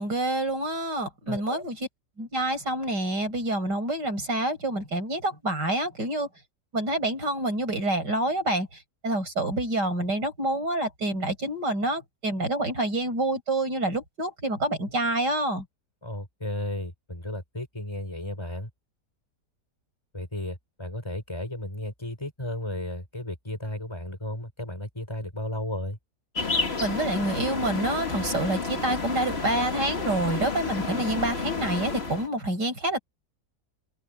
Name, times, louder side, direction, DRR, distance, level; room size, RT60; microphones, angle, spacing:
voice 1, 0.0-1.8 2.2-6.3 6.7-8.7 9.0-15.6 26.8-33.0, right 1 dB, 85° right, 7.7 m, -27 dB
voice 2, 1.3-1.6 16.0-18.7 20.1-26.0, left 1 dB, 15° left, 4.7 m, -34 dB
sound 1, 26.3-32.3, left 4 dB, 35° left, 2.2 m, -30 dB
omnidirectional pair, 1.8 m